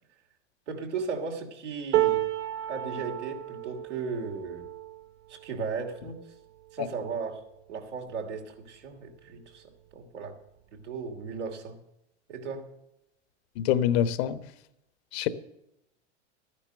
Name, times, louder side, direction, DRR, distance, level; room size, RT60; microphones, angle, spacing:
voice 1, 0.7-2.3 2.7-4.7 5.3-6.2 6.7-7.4 7.7-10.4 10.7-11.8 12.3-12.7, right 5 dB, 80° right, 2 dB, 2.8 m, -36 dB
sound 1, 1.9-8.1 8.7-8.9 9.1-9.9 10.9-11.0, right 14 dB, 40° right, 0.7 m, -33 dB
voice 2, 13.6-14.4 15.1-15.3, left 10 dB, 60° left, 13 dB, 1.2 m, -25 dB
13.0 x 9.9 x 6.6 m, 0.84 s
hypercardioid pair, 95°, 35 cm